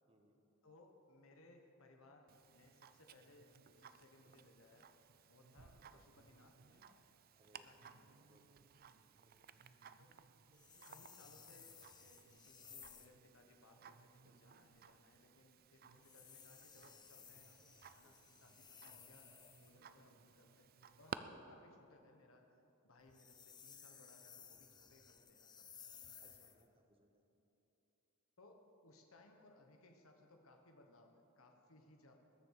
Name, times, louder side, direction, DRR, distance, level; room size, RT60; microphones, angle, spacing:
voice 1, 0.1-0.4 5.9-6.0 7.3-7.7 8.2-8.7 9.1-9.6 18.0-18.6 21.0-21.3 26.2-27.2, right 1 dB, 25° right, 5 dB, 1.1 m, -72 dB
voice 2, 0.6-4.9 5.3-7.0 7.5-8.2 9.9-10.1 10.8-17.6 17.9-20.7 21.0-26.5 28.4-32.2, left 2 dB, 85° left, 3 dB, 1.3 m, -66 dB
Tick-tock, 2.3-21.2, right 7 dB, 45° right, 0.5 m, -58 dB
sound 1, 10.5-13.2 15.9-19.8 23.0-26.7, left 7 dB, 20° left, 0.6 m, -59 dB
20.5 x 7.0 x 6.6 m, 2.9 s
head